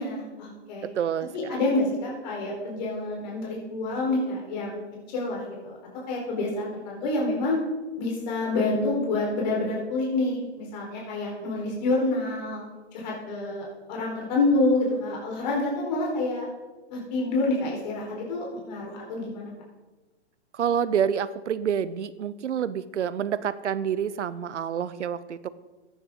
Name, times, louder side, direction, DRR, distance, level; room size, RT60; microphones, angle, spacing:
voice 1, 0.0-0.9 1.3-5.8 6.1-7.6 8.0-12.6 12.9-16.4 16.9-19.5, left 2 dB, 40° left, -2 dB, 4.5 m, -28 dB
voice 2, 0.9-1.6 20.5-25.5, right 8 dB, 80° right, 16 dB, 0.9 m, -28 dB
15.0 x 10.0 x 3.9 m, 1.2 s
hypercardioid pair, 155°, 35 cm